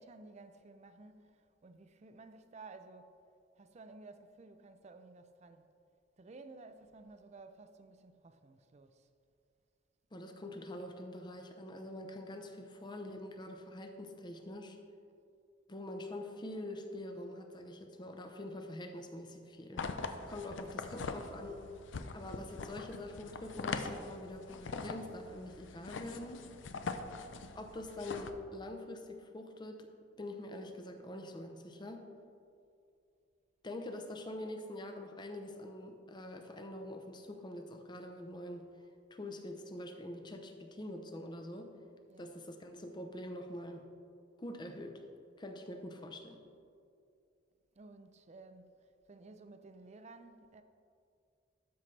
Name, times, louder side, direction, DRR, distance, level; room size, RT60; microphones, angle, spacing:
voice 1, 0.0-3.2 3.6-5.7 6.2-9.1 20.5-21.0 42.1-42.5 47.8-50.6, right 3 dB, 35° right, 0.4 m, -55 dB
voice 2, 10.1-14.8 15.7-19.9 20.3-21.6 22.1-26.5 27.6-29.9 30.2-32.1 33.6-38.7 39.1-41.7 42.2-43.8 44.4-45.0 45.4-46.4, left 1 dB, 25° left, 0.7 m, -45 dB
sound 1, 19.8-28.3, left 4 dB, 80° left, 0.5 m, -42 dB
12.5 x 5.6 x 3.3 m
head